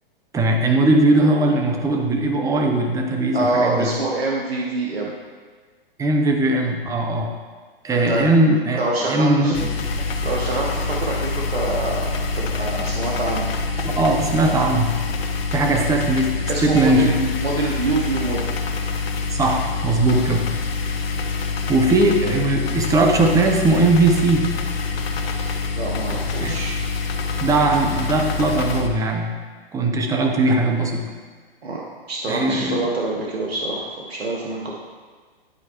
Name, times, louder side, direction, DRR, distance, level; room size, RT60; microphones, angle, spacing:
voice 1, 0.3-3.9 6.0-7.3 7.8-9.7 12.8-12.9 13.9-14.9 15.5-17.3 19.3-20.5 21.7-24.5 26.4-26.6 27.4-29.4 29.7-31.1 32.3-32.8, right 2 dB, 10° right, 3 dB, 0.7 m, -19 dB
voice 2, 3.3-5.1 7.9-8.3 8.8-9.6 10.2-12.1 12.3-13.5 16.5-17.1 17.4-18.4 25.7-26.8 31.6-31.8 32.1-34.8, right 2 dB, 85° right, -2 dB, 1.2 m, -25 dB
sound 1, 9.5-28.9, left 4 dB, 75° left, 1.0 m, -26 dB
10.5 x 4.6 x 3.0 m, 1.5 s
hypercardioid pair, 125°, 30 cm